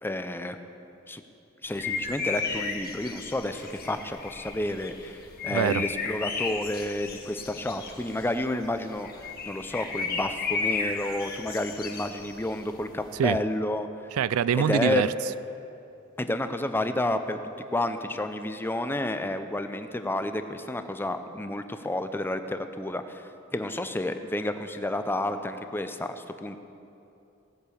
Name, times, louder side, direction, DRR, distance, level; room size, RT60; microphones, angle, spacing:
voice 1, 0.0-0.6 1.1-1.2 1.6-13.9 14.5-15.1 16.2-17.4 17.7-26.6, left 1 dB, 10° left, 8 dB, 0.6 m, -30 dB
sound 1, 1.7-13.4, left 4 dB, 45° left, 1.4 m, -34 dB
voice 2, 5.5-5.9 13.2-13.4 14.1-15.1, right 8 dB, 85° right, 17 dB, 0.3 m, -24 dB
17.5 x 6.7 x 8.3 m, 2.7 s
head